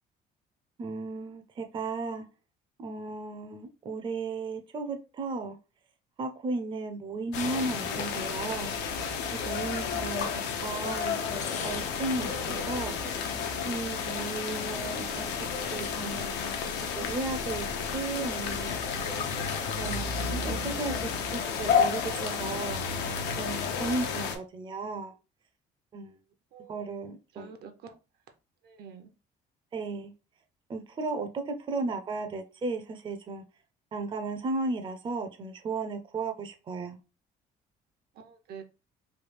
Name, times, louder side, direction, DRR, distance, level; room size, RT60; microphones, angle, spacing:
voice 1, 0.8-2.3 2.8-5.6 6.2-8.7 9.4-13.0 13.6-15.5 15.7-17.7 17.9-19.0 19.8-22.8 23.4-25.1 25.9-26.2 26.7-27.5 29.7-30.1 30.7-33.4 33.9-37.0, right 3 dB, 30° right, 0.5 m, -35 dB
sound 1, 7.3-24.4, left 6 dB, 85° left, 0.6 m, -31 dB
sound 2, 7.3-10.9 11.3-16.8 17.1-20.0, left 6 dB, 45° left, 0.5 m, -44 dB
voice 2, 26.5-26.9 27.3-28.0 28.6-29.1 38.1-38.6, right 6 dB, 70° right, 0.6 m, -47 dB
3.2 x 2.3 x 3.2 m
cardioid pair, 110°, 17 cm